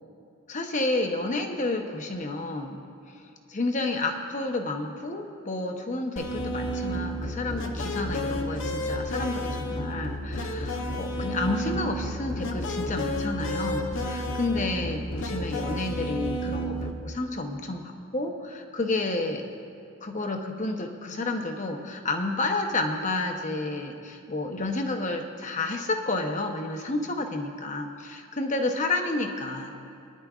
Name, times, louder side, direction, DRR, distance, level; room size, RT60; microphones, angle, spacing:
voice 1, 0.5-2.8 3.5-19.4 20.0-29.7, left 2 dB, 35° left, 4 dB, 0.9 m, -30 dB
sound 1, 6.2-16.9, equal, 60° left, 0.8 m, -31 dB
27.5 x 10.5 x 2.4 m, 2.6 s
head